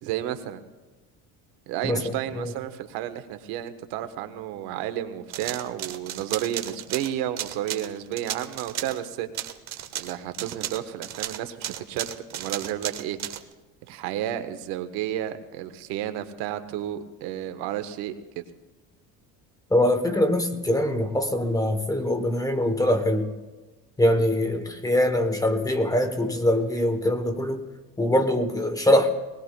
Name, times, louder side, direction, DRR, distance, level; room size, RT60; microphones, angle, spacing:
voice 1, 0.0-0.6 1.7-9.3 9.9-13.2 13.8-18.4, right 12 dB, 85° right, 9 dB, 1.1 m, -32 dB
voice 2, 1.8-2.5 19.7-23.3 24.0-27.6 28.0-29.1, left 1 dB, 10° left, 8 dB, 0.9 m, -23 dB
sound 1, 5.3-9.0 9.3-13.4, right 11 dB, 45° right, 0.9 m, -34 dB
22.0 x 19.5 x 2.2 m, 1.2 s
cardioid pair, 140°, 36 cm